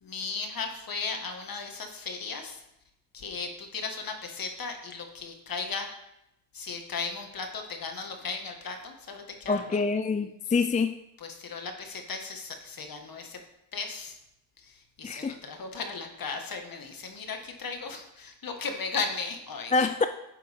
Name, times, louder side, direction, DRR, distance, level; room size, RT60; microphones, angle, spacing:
voice 1, 0.0-2.6 3.1-5.9 6.5-9.8 11.2-13.4 13.7-14.2 14.6-20.1, left 4 dB, 45° left, 4 dB, 1.9 m, -36 dB
voice 2, 9.5-10.9 15.0-15.4 19.7-20.1, left 4 dB, 15° left, 10 dB, 0.4 m, -26 dB
11.5 x 7.5 x 3.7 m, 0.84 s
supercardioid pair, 70°, 47 cm